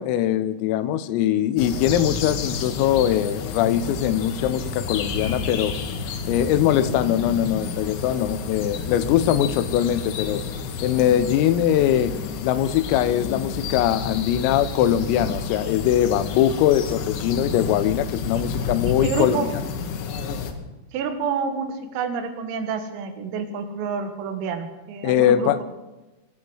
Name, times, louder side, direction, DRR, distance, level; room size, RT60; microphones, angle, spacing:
voice 1, 0.0-5.8 6.3-10.4 10.8-12.1 12.4-19.4 25.0-25.6, left 11 dB, 85° left, 13 dB, 3.5 m, -21 dB
sound 1, 1.6-20.5, left 5 dB, 70° left, 3.4 m, -30 dB
voice 2, 18.3-19.5 20.9-25.6, right 5 dB, 85° right, 6 dB, 4.2 m, -29 dB
21.0 x 9.9 x 6.3 m, 1.1 s
omnidirectional pair, 5.9 m